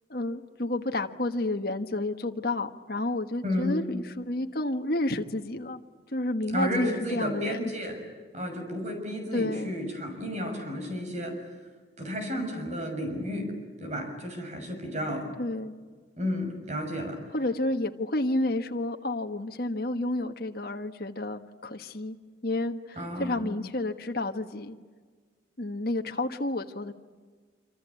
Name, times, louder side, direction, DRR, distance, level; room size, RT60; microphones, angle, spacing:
voice 1, 0.1-5.8 6.1-7.7 9.3-9.7 15.4-15.7 17.3-22.2 22.4-24.8 25.6-26.9, left 2 dB, 55° left, 5 dB, 1.5 m, -30 dB
voice 2, 3.4-3.8 6.5-8.0 8.3-11.3 12.0-13.5 13.8-15.3 16.2-17.2 23.0-23.5, equal, 40° right, 4 dB, 6.4 m, -32 dB
26.5 x 26.5 x 8.4 m, 1.5 s
head